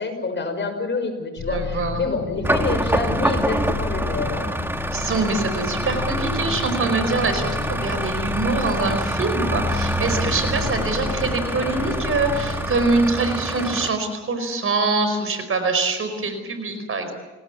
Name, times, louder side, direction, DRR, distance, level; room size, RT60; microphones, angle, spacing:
voice 1, 0.0-4.5, left 4 dB, 40° left, 6 dB, 6.1 m, -27 dB
sound 1, 1.4-13.0, left 5 dB, 55° left, 6.7 m, -32 dB
voice 2, 1.5-2.1 4.9-17.1, right 3 dB, 45° right, 8 dB, 4.9 m, -24 dB
sound 2, 2.4-13.9, right 1 dB, 5° right, 1.9 m, -26 dB
29.5 x 18.5 x 7.2 m, 1.2 s
cardioid pair, 90°, 30 cm